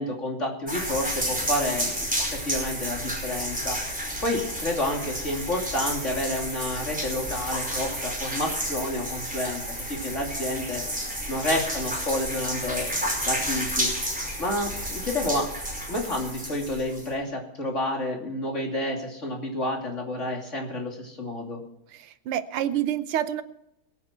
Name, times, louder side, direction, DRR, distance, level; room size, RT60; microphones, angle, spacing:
voice 1, 0.0-3.8 4.2-10.8 11.3-12.9 13.2-13.9 14.4-15.5 15.9-21.6, left 1 dB, 35° left, 1 dB, 3.0 m, -30 dB
sound 1, 0.7-17.1, equal, 5° right, 5.0 m, -31 dB
voice 2, 21.9-23.4, right 11 dB, 90° right, 12 dB, 1.8 m, -28 dB
22.5 x 9.1 x 4.4 m, 0.82 s
omnidirectional pair, 2.3 m